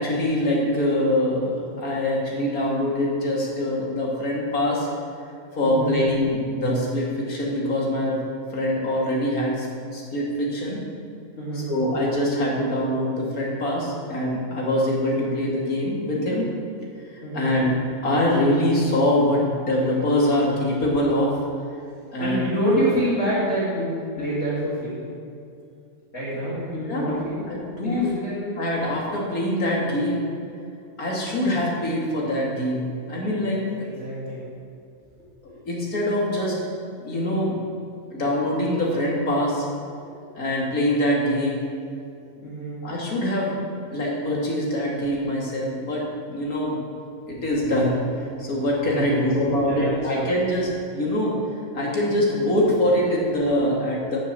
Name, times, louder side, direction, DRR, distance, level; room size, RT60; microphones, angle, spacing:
voice 1, 0.0-4.9 5.6-8.2 8.5-9.7 9.9-10.8 11.5-16.5 17.1-17.7 18.0-21.3 22.1-22.5 26.8-28.1 28.6-30.2 31.0-33.6 35.6-36.6 37.0-37.6 38.1-39.7 40.4-41.6 42.8-43.5 43.9-46.8 47.2-51.4 51.7-54.2, left 1 dB, 85° left, -4 dB, 2.8 m, -24 dB
voice 2, 5.6-6.0 11.4-11.7 17.2-17.5 22.2-23.9 24.2-25.0 26.1-28.5 33.5-34.4 35.5-35.6 42.4-42.8 49.0-50.3, equal, 60° left, -13 dB, 3.8 m, -27 dB
11.5 x 7.0 x 6.8 m, 2.5 s
omnidirectional pair, 1.5 m